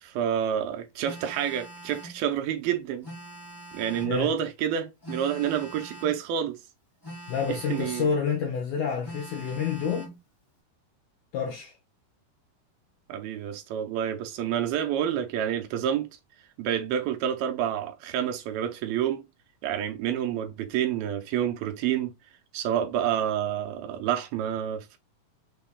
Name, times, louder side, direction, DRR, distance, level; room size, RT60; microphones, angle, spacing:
voice 1, 0.0-3.1 3.7-6.6 7.5-8.1 13.1-16.1 16.6-19.2 19.6-22.1 22.5-25.0, right 9 dB, 80° right, 2.3 m, -28 dB
Telephone, 1.0-2.2 3.0-4.2 5.0-6.2 7.0-8.2 9.0-10.2, right 1 dB, 35° left, 0.4 m, -43 dB
voice 2, 7.3-10.1 11.3-11.7, left 6 dB, 80° left, 1.8 m, -28 dB
6.2 x 2.2 x 3.4 m
omnidirectional pair, 4.4 m